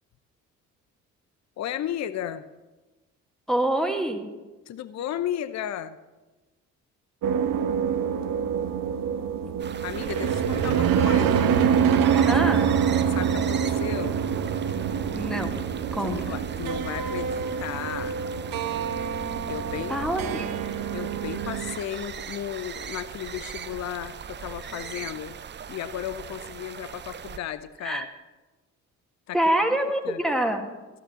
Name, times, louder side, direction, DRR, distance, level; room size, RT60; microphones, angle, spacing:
voice 1, 1.6-2.5 4.7-6.0 9.8-11.6 13.1-14.2 16.0-18.2 19.5-20.0 20.9-25.4 25.7-28.1 29.3-29.4 30.0-30.2, left 11 dB, 40° left, 14 dB, 0.8 m, -34 dB
voice 2, 3.5-4.3 12.3-12.8 15.1-15.6 15.9-16.4 19.9-20.5 27.8-28.1 29.3-30.7, right 1 dB, ahead, 3 dB, 2.0 m, -26 dB
sound 1, 7.2-21.8, right 7 dB, 50° right, 1.2 m, -25 dB
sound 2, 9.6-27.4, right 7 dB, 25° right, 0.7 m, -40 dB
15.5 x 9.1 x 7.6 m, 1.2 s
figure-of-eight pair, 45°, 44 cm